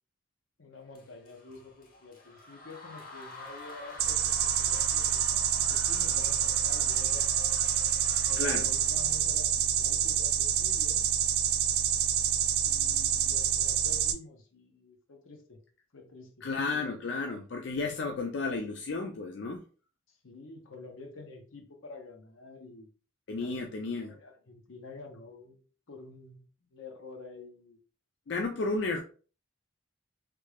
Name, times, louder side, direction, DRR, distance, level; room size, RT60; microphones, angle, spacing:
voice 1, 0.6-7.3 8.3-11.1 12.6-15.6 15.9-16.5 20.1-22.9 23.4-27.8, left 3 dB, 85° left, 0.8 m, -49 dB
sound 1, 0.9-9.2, left 2 dB, 45° left, 0.8 m, -47 dB
sound 2, 4.0-14.1, right 10 dB, 50° right, 0.3 m, -27 dB
voice 2, 8.4-8.7 16.4-19.6 23.3-24.2 28.3-29.0, left 3 dB, 60° left, 0.4 m, -32 dB
3.3 x 2.3 x 3.3 m
head